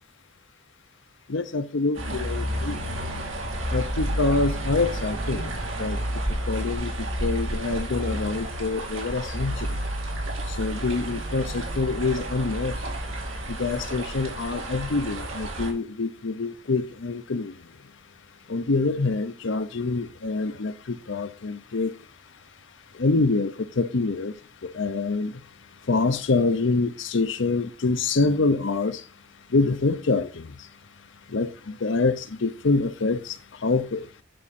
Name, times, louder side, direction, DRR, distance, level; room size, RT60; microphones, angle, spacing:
voice 1, 1.3-2.8 3.7-5.5 5.8-6.0 6.5-6.9 7.2-9.7 10.5-12.8 13.5-17.5 18.5-21.9 23.0-24.3 24.6-25.3 25.9-29.0 29.5-30.5 31.3-33.4 33.6-34.1, left 3 dB, 70° left, 0.7 m, -26 dB
sound 1, 1.9-15.7, right 1 dB, 85° right, 2.6 m, -30 dB
10.5 x 4.8 x 4.2 m
head